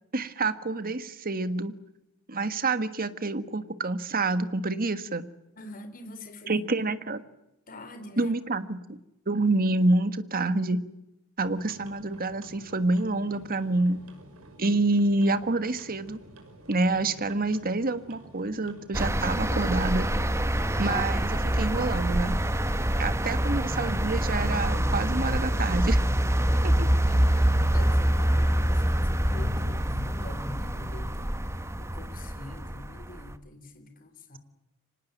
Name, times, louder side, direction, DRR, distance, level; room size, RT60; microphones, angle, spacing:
voice 1, 0.1-1.7 2.3-5.2 6.5-7.2 8.2-8.8 9.3-10.8 11.4-14.0 14.6-16.2 16.7-20.1 20.8-22.4 23.0-26.0 26.8-26.9, right 2 dB, 45° right, 12 dB, 1.5 m, -27 dB
voice 2, 5.6-6.7 7.7-8.6 14.6-14.8 26.4-31.3 31.8-34.4, left 2 dB, 40° left, 8 dB, 3.9 m, -44 dB
sound 1, 11.4-21.2, right 1 dB, 85° right, 5.8 m, -50 dB
sound 2, 18.9-33.3, right 1 dB, 15° right, 1.2 m, -25 dB
25.5 x 19.5 x 9.3 m, 0.91 s
head